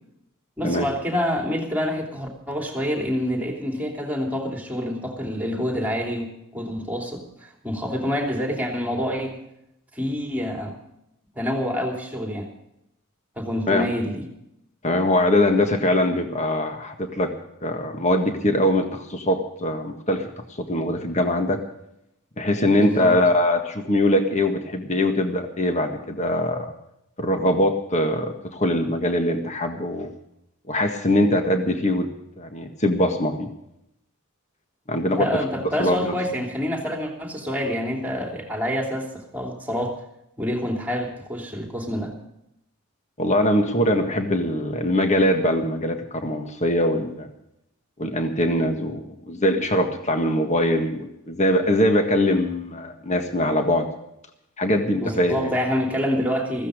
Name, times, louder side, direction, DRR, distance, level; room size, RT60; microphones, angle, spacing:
voice 1, 0.6-9.4 9.9-10.7 11.4-12.5 13.4-14.3 22.8-23.2 35.0-40.0 40.4-42.1 55.0-56.7, equal, 5° right, 1 dB, 3.1 m, -27 dB
voice 2, 14.8-17.3 17.6-20.3 20.6-21.6 22.4-26.7 27.2-30.1 30.7-32.1 32.4-33.5 34.9-35.3 35.8-36.1 43.2-47.3 48.0-53.9 54.6-55.5, left 1 dB, 30° left, 5 dB, 1.7 m, -22 dB
15.5 x 15.5 x 5.1 m, 0.78 s
head